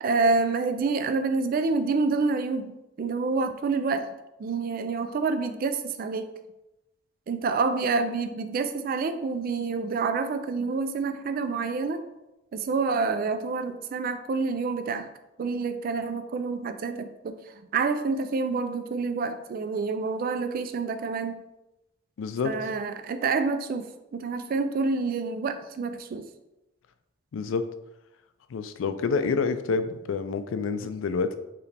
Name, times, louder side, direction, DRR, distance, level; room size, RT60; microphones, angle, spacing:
voice 1, 0.0-4.1 4.4-6.3 7.3-12.1 12.5-15.1 15.4-21.4 22.4-26.3, right 4 dB, 45° right, 9 dB, 0.3 m, -28 dB
voice 2, 22.2-22.5 27.3-27.7 28.5-31.3, left 5 dB, 75° left, 11 dB, 0.4 m, -28 dB
4.7 x 3.1 x 3.3 m, 0.94 s
head